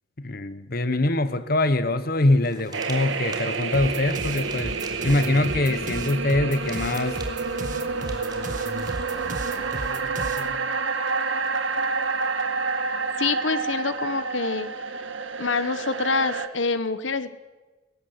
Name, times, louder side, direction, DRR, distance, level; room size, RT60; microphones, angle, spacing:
voice 1, 0.2-4.8 5.0-7.2, left 2 dB, 50° left, 12 dB, 1.1 m, -23 dB
sound 1, 2.4-10.0, right 3 dB, 20° right, 3.4 m, -46 dB
sound 2, 2.7-16.5, right 4 dB, 85° right, 1.9 m, -29 dB
sound 3, 3.7-10.5, right 2 dB, 45° right, 1.7 m, -35 dB
voice 2, 13.2-14.7 15.4-17.4, left 4 dB, 85° left, 13 dB, 1.2 m, -26 dB
22.0 x 19.5 x 8.0 m, 1.2 s
head